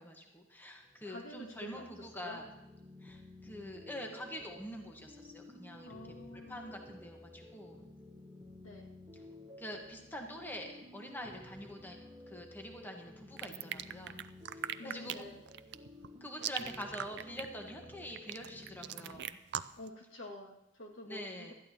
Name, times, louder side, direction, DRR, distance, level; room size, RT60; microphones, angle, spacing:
voice 1, 0.0-2.4 3.0-6.0 6.5-7.8 9.6-12.0 12.3-14.2 14.5-15.3 16.2-19.4 21.0-21.5, equal, 10° left, 2 dB, 1.3 m, -45 dB
sound 1, 0.8-19.2, left 1 dB, 20° right, 1.2 m, -54 dB
voice 2, 1.0-2.4 5.8-6.6 8.6-8.9 14.8-15.4 19.8-21.5, left 2 dB, 80° left, -1 dB, 2.1 m, -48 dB
sound 2, 13.4-19.9, right 11 dB, 60° right, 0.4 m, -40 dB
19.5 x 13.0 x 2.9 m, 0.88 s
head